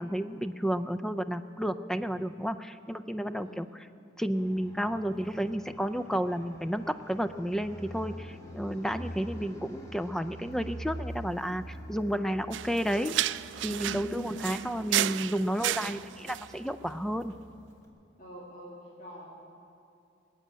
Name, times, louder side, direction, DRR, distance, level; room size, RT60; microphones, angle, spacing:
voice 1, 0.0-3.7 4.2-11.6 11.9-13.1 13.6-17.3, equal, 5° left, 11 dB, 0.4 m, -31 dB
Fixed-wing aircraft airplane, 4.3-17.9, right 1 dB, 20° left, 1.9 m, -46 dB
sound 1, 12.5-16.5, right 13 dB, 80° right, 0.3 m, -32 dB
voice 2, 13.8-14.6 18.2-19.2, equal, 45° left, -7 dB, 2.7 m, -45 dB
19.5 x 7.5 x 9.4 m, 2.6 s
head